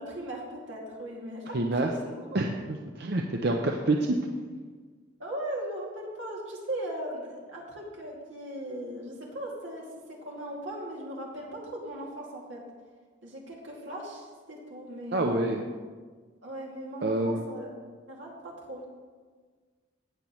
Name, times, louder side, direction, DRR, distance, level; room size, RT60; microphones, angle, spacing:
voice 1, 0.0-2.3 5.2-12.6 13.2-15.5 16.4-18.8, right 1 dB, 80° right, -2 dB, 2.3 m, -38 dB
voice 2, 1.5-1.9 2.3-4.2 15.1-15.6 17.0-17.4, right 2 dB, 55° right, 2 dB, 0.6 m, -27 dB
16.5 x 7.1 x 3.1 m, 1.5 s
head